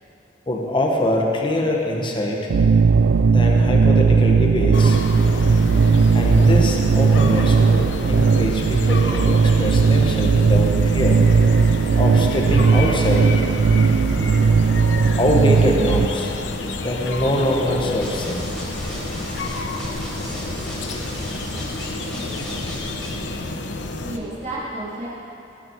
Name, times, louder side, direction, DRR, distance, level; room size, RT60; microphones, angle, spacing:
voice 1, 0.5-2.5 3.3-5.0 6.1-11.2 12.0-13.3 14.8-14.9 15.1-16.3 16.8-18.5, left 1 dB, 30° left, 0 dB, 1.3 m, -23 dB
sound 1, 2.5-16.1, right 5 dB, 70° right, 0.3 m, -17 dB
sound 2, 4.7-24.2, left 2 dB, 80° left, 0.9 m, -30 dB
sound 3, 18.0-23.3, equal, ahead, 3.4 m, -35 dB
voice 2, 23.4-25.1, right 1 dB, 40° right, -8 dB, 2.6 m, -32 dB
19.0 x 10.0 x 4.7 m, 2.8 s
head